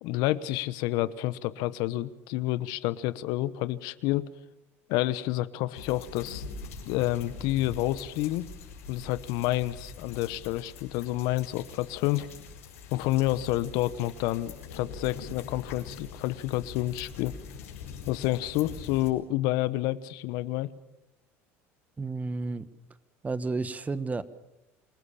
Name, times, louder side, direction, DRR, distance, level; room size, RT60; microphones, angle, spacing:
voice 1, 0.0-4.3 4.9-6.4 6.8-8.5 8.9-12.3 12.9-17.3 18.1-20.7, left 16 dB, 65° left, 16 dB, 1.1 m, -29 dB
sound 1, 5.7-19.1, left 5 dB, 85° left, 6.6 m, -43 dB
voice 2, 22.0-22.6 23.2-24.2, right 3 dB, 20° right, 15 dB, 1.4 m, -31 dB
27.0 x 19.5 x 7.2 m, 0.93 s
hypercardioid pair, 80°, 7 cm